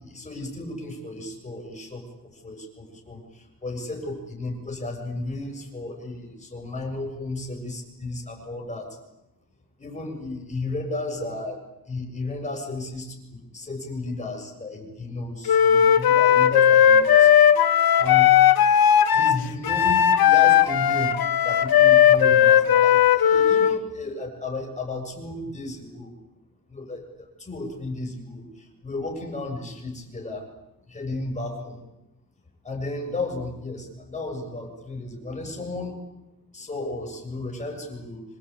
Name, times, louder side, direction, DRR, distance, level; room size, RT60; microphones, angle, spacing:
voice 1, 0.0-7.6 8.0-9.0 9.8-13.0 13.3-17.3 18.0-18.3 19.1-26.1 26.7-30.5 30.9-31.8 32.6-36.0 36.5-38.2, left 2 dB, 20° left, 1 dB, 7.0 m, -34 dB
Wind instrument woodwind instrument, 15.5-23.8, left 9 dB, 90° left, 1.4 m, -17 dB
26.5 x 23.5 x 8.6 m, 0.93 s
wide cardioid pair, 165°, 35 cm